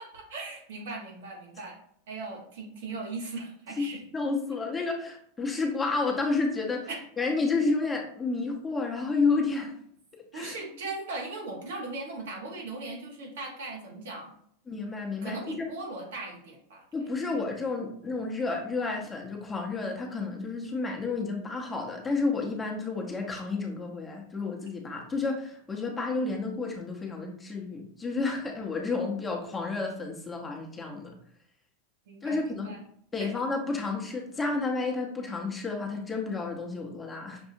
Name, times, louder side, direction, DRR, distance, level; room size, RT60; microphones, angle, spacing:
voice 1, 0.0-4.0 6.9-7.0 10.3-14.3 15.2-17.5 32.1-32.8 33.2-33.3, right 3 dB, 75° right, 0 dB, 1.3 m, -39 dB
voice 2, 3.8-6.9 7.2-9.7 10.3-10.6 14.7-15.6 16.9-31.2 32.2-32.8 33.1-37.4, left 3 dB, 15° left, 0 dB, 0.9 m, -31 dB
6.0 x 2.6 x 2.6 m, 0.66 s
hypercardioid pair, 115°, 0 cm